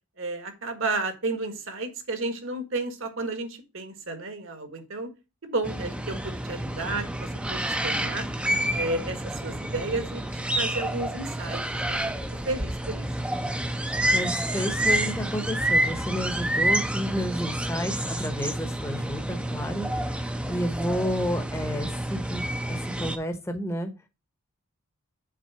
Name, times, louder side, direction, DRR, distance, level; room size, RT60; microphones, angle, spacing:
voice 1, 0.2-5.1 5.4-8.3 8.8-12.1 12.4-13.1, right 2 dB, 60° right, 7 dB, 1.5 m, -32 dB
sound 1, 5.6-23.2, right 1 dB, 5° right, 0.5 m, -29 dB
voice 2, 14.1-23.9, equal, 10° left, 6 dB, 0.9 m, -31 dB
7.6 x 3.8 x 5.6 m, 0.27 s
head